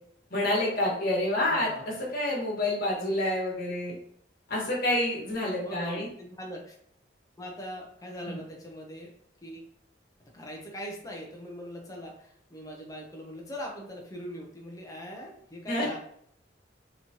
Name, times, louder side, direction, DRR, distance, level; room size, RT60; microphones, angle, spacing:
voice 1, 0.3-3.9 4.5-6.1 8.2-8.4 15.7-16.0, left 1 dB, 50° left, -3 dB, 1.5 m, -28 dB
voice 2, 1.5-1.8 5.4-6.7 7.4-9.1 9.4-9.6 10.3-16.0, equal, 20° left, 0 dB, 0.7 m, -41 dB
4.0 x 3.1 x 2.8 m, 0.67 s
head